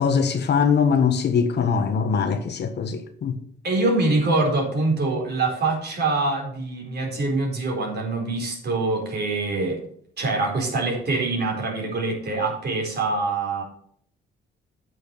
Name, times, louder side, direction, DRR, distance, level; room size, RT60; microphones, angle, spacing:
voice 1, 0.0-3.4, left 6 dB, 60° left, 1.4 m, -22 dB
voice 2, 3.6-9.8 10.2-13.6, right 3 dB, 55° right, 4.4 m, -24 dB
8.9 x 6.3 x 6.9 m
cardioid pair, 90°, 20 cm